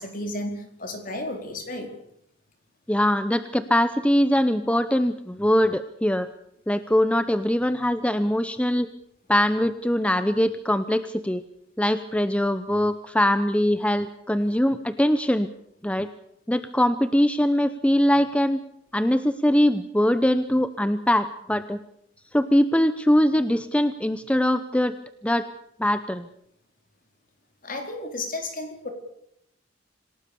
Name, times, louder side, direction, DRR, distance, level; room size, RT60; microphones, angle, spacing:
voice 1, 0.0-1.9 27.6-28.9, left 2 dB, 45° left, 5 dB, 4.5 m, -33 dB
voice 2, 2.9-6.3 6.7-8.9 9.3-11.4 11.8-15.5 15.8-16.1 16.5-18.6 18.9-21.8 22.3-24.9 25.2-25.5 25.8-26.3, equal, 5° left, 11 dB, 0.8 m, -22 dB
27.0 x 18.0 x 7.0 m, 0.73 s
head